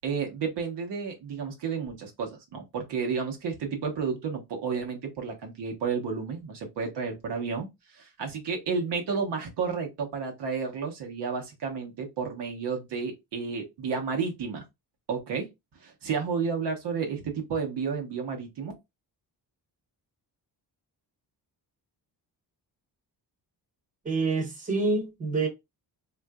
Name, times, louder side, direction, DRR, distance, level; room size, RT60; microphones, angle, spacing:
voice 1, 0.0-7.7 7.9-14.6 15.1-15.5 15.8-18.7, right 5 dB, 85° right, 1.0 m, -31 dB
voice 2, 24.0-25.5, right 3 dB, 20° right, 0.9 m, -27 dB
3.7 x 2.5 x 2.3 m
wide cardioid pair, 165°, 40 cm